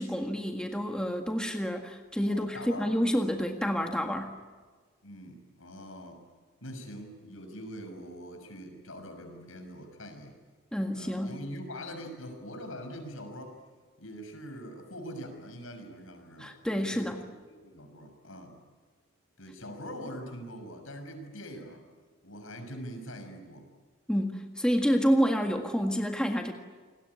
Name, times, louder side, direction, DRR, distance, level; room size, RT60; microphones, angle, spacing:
voice 1, 0.0-4.3 10.7-11.4 16.4-17.2 24.1-26.5, equal, 5° left, 3 dB, 1.7 m, -28 dB
voice 2, 2.3-2.9 5.0-6.3 6.6-10.4 10.9-13.6 14.0-18.6 19.4-21.8 22.2-23.7, equal, 75° left, 6 dB, 6.4 m, -43 dB
29.0 x 20.5 x 9.9 m, 1.5 s
head